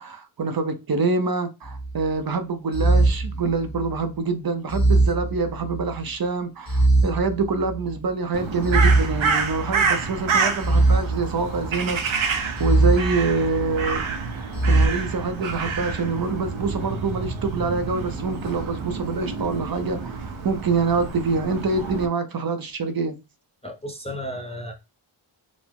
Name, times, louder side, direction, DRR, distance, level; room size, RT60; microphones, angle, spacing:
voice 1, 0.0-14.0 14.7-23.2, right 4 dB, 45° right, 0.6 m, -26 dB
sound 1, 1.6-2.1 2.7-4.0 4.7-6.0 6.7-8.0 8.6-9.9 10.6-11.9 12.6-13.9 14.5-14.9, right 2 dB, 45° left, 1.4 m, -21 dB
Crow, 8.3-22.1, right 5 dB, 70° right, 0.8 m, -28 dB
voice 2, 23.6-24.7, equal, 15° left, 0.5 m, -33 dB
4.9 x 2.0 x 3.6 m
wide cardioid pair, 160°, 49 cm